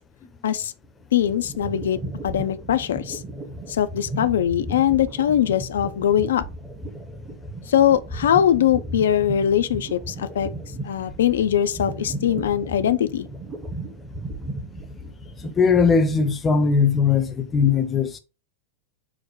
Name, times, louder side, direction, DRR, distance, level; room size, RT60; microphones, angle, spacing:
sound 1, 0.8-16.3, right 1 dB, 20° right, 1.0 m, -35 dB
voice 1, 1.1-2.0 2.2-3.2 3.7-6.4 7.7-10.5 10.8-13.3, left 10 dB, 60° left, 0.4 m, -21 dB
voice 2, 15.4-18.2, left 5 dB, 20° left, 0.7 m, -19 dB
4.8 x 2.1 x 4.6 m
figure-of-eight pair, 90°, 0 cm